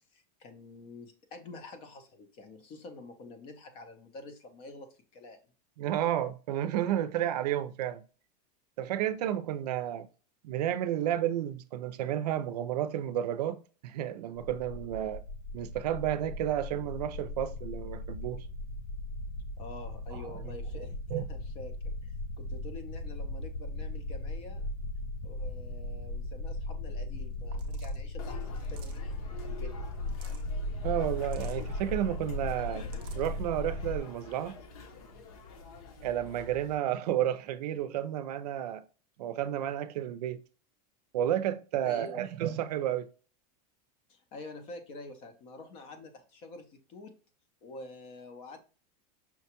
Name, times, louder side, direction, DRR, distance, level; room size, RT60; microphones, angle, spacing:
voice 1, 0.1-5.4 19.6-24.7 25.2-29.8 41.8-42.2 44.1-47.1 47.6-48.6, left 2 dB, 25° left, 0.5 m, -47 dB
voice 2, 5.8-8.0 8.8-10.1 10.4-15.2 15.5-18.4 20.1-20.3 21.1-21.3 30.8-32.9 33.2-34.6 36.0-38.8 39.2-40.4 41.1-43.1, right 11 dB, 75° right, 0.5 m, -31 dB
sound 1, 14.3-34.0, left 2 dB, 85° left, 0.6 m, -37 dB
sound 2, 27.5-28.0 28.5-29.1 29.9-30.5 31.2-31.6 32.6-33.3, right 8 dB, 25° right, 0.5 m, -55 dB
sound 3, 28.2-36.8, left 4 dB, 60° left, 0.9 m, -49 dB
5.7 x 2.2 x 2.8 m
supercardioid pair, 180°, 21 cm